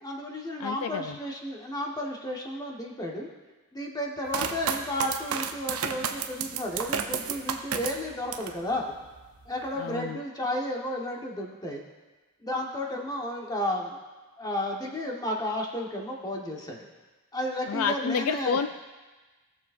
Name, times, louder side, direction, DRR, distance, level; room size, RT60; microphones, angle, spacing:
voice 1, 0.0-3.3 3.7-8.9 9.5-11.8 12.4-14.0 14.4-16.8 17.3-18.6, left 1 dB, 15° left, -1 dB, 1.2 m, -32 dB
voice 2, 0.6-1.2 9.8-10.2 17.7-18.7, left 6 dB, 65° left, 9 dB, 0.4 m, -29 dB
sound 1, 4.3-8.6 9.0-9.7, right 7 dB, 70° right, 0.7 m, -32 dB
18.0 x 6.9 x 2.6 m, 1.2 s
head